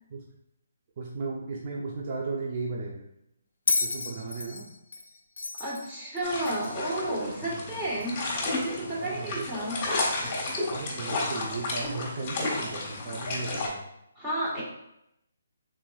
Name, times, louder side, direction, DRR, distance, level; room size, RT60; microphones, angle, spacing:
voice 1, 1.0-3.1 3.8-4.7 7.4-7.9 9.0-9.5 10.7-13.9, right 3 dB, 40° right, -2 dB, 0.6 m, -36 dB
Bell, 3.7-6.9 8.0-8.1, left 3 dB, 80° left, 0.5 m, -32 dB
voice 2, 5.6-9.8 14.1-14.6, right 1 dB, 15° right, -7 dB, 1.5 m, -32 dB
sound 1, 6.2-13.7, left 2 dB, 25° left, 1.4 m, -32 dB
4.5 x 3.8 x 2.4 m, 0.81 s
hypercardioid pair, 150°, 0 cm